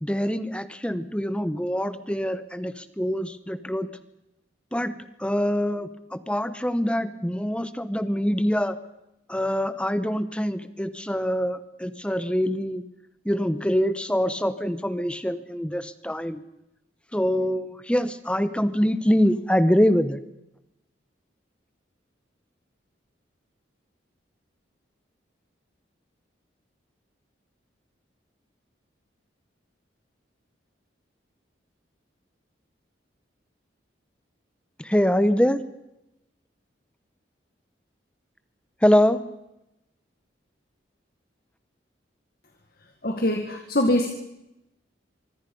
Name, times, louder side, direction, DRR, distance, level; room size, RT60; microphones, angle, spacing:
voice 1, 0.0-3.9 4.7-4.9 5.2-8.8 9.3-12.8 13.2-16.4 17.1-20.2 34.8-35.6 38.8-39.2, equal, 5° left, 12 dB, 1.0 m, -24 dB
voice 2, 43.0-44.1, left 1 dB, 50° left, 4 dB, 1.8 m, -23 dB
25.0 x 23.5 x 5.4 m, 0.90 s
head